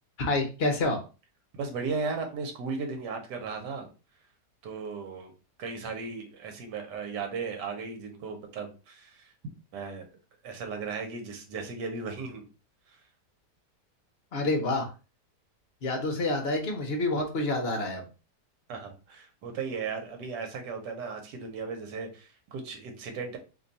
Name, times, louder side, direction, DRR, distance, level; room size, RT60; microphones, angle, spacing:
voice 1, 0.2-1.0 14.3-14.9 15.8-18.1, left 2 dB, 50° left, 3 dB, 0.8 m, -28 dB
voice 2, 1.5-3.9 4.6-5.3 5.6-9.3 9.7-10.1 10.4-12.4 18.7-23.4, right 4 dB, 85° right, 4 dB, 1.4 m, -36 dB
3.0 x 2.3 x 3.9 m, 0.32 s
omnidirectional pair, 1.8 m